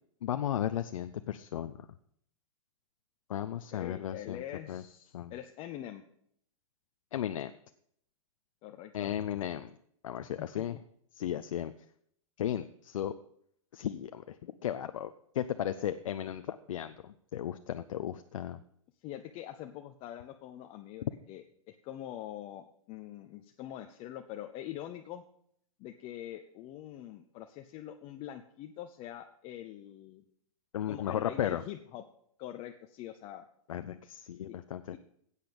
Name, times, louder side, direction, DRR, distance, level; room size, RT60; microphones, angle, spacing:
voice 1, 0.2-1.9 3.3-4.4 4.7-4.8 5.1-5.3 7.1-7.5 8.9-9.7 10.0-10.8 11.2-11.7 12.4-13.1 13.7-18.6 30.7-31.6 33.7-34.8, left 10 dB, 75° left, 10 dB, 0.6 m, -35 dB
voice 2, 3.7-6.0 8.6-9.2 10.2-10.3 10.6-10.7 19.0-25.2 25.8-30.2 30.9-32.0 32.4-33.4 34.5-34.6 34.9-35.0, left 12 dB, 35° left, 6 dB, 0.8 m, -44 dB
10.5 x 8.4 x 5.2 m, 0.68 s
hypercardioid pair, 130°, 17 cm